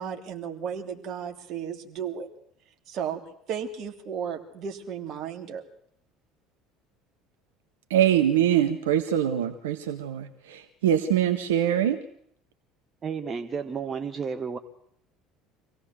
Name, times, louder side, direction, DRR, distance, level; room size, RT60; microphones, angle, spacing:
voice 1, 0.0-2.3 2.9-3.2 3.5-5.6, right 7 dB, 50° right, 3 dB, 3.2 m, -34 dB
voice 2, 7.9-12.0, right 10 dB, 75° right, 7 dB, 1.3 m, -23 dB
voice 3, 13.0-14.6, right 6 dB, 35° right, 9 dB, 1.4 m, -32 dB
26.0 x 17.0 x 7.9 m, 0.70 s
figure-of-eight pair, 65°, 0 cm